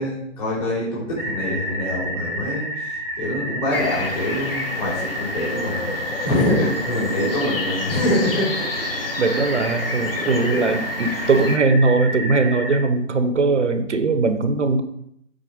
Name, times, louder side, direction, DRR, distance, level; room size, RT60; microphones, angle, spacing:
voice 1, 0.0-5.9 6.2-8.7 10.1-10.2 10.5-10.6, left 1 dB, 30° left, -6 dB, 3.3 m, -25 dB
sound 1, 1.2-12.8, right 1 dB, 5° left, 1.4 m, -30 dB
sound 2, 3.7-11.6, left 3 dB, 45° left, 1.0 m, -31 dB
voice 2, 6.4-6.7 9.2-14.8, right 3 dB, 65° right, 9 dB, 0.9 m, -20 dB
7.8 x 4.4 x 5.0 m, 0.73 s
figure-of-eight pair, 160°, 38 cm